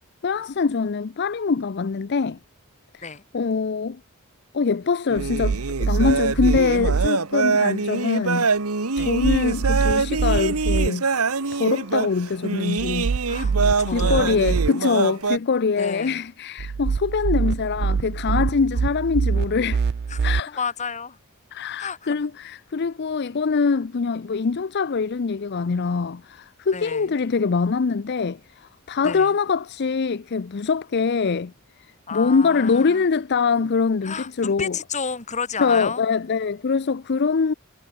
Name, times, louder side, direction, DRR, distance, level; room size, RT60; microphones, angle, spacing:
voice 1, 0.2-2.4 2.9-3.0 3.3-4.0 4.5-8.5 9.0-13.1 13.6-19.8 20.2-20.6 21.5-31.5 32.1-34.8 35.6-37.5, left 5 dB, 50° left, 0.5 m, -23 dB
sound 1, 5.1-15.4, right 4 dB, 80° right, 1.5 m, -24 dB
sound 2, 5.2-7.1 9.0-10.9 12.8-14.7 16.6-20.4, right 5 dB, 45° right, 0.3 m, -24 dB
voice 2, 13.3-14.5 15.8-16.2 20.1-20.2 20.5-21.2 21.8-22.1 26.7-27.1 29.0-29.3 32.1-33.0 34.0-36.0, left 5 dB, 30° left, 1.7 m, -31 dB
head